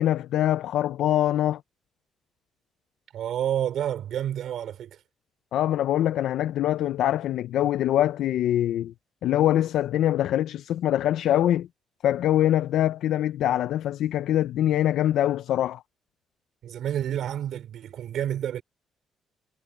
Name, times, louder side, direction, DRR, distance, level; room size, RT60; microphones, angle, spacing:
voice 1, 0.0-1.6 5.5-8.9 9.2-11.7 12.0-15.8, left 12 dB, 75° left, 0.5 m, -23 dB
voice 2, 3.1-5.0 16.6-18.6, right 10 dB, 65° right, 5.2 m, -29 dB
cardioid pair, 120°, 0 cm